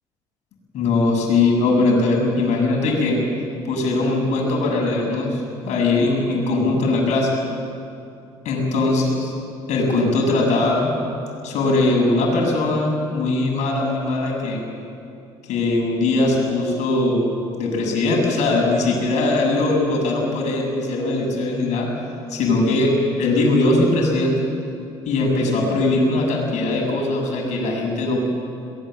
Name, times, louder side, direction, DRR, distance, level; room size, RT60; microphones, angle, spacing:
voice 1, 0.7-3.2 3.7-7.3 8.5-9.3 9.7-10.9 11.4-14.6 15.5-17.2 17.5-21.9 22.3-22.9 23.2-24.4 25.1-28.2, left 2 dB, 65° left, 0 dB, 7.1 m, -20 dB
22.5 x 20.0 x 7.8 m, 2.7 s
hypercardioid pair, 65°, 13 cm